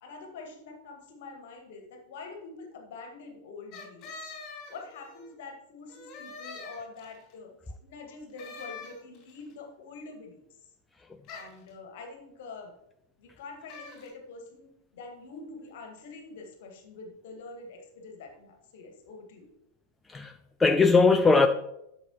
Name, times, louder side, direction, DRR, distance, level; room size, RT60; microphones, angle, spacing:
voice 1, 0.0-4.4 4.7-7.5 7.8-10.4 11.3-12.8 13.2-19.5, left 3 dB, 55° left, 1.8 m, -45 dB
sound 1, 3.7-5.3 5.9-7.3 8.4-9.4 11.2-11.7 13.7-14.1, left 4 dB, 35° left, 3.0 m, -44 dB
voice 2, 20.1-21.5, left 4 dB, 10° left, 0.5 m, -21 dB
12.5 x 6.6 x 3.1 m
figure-of-eight pair, 90°, 0 cm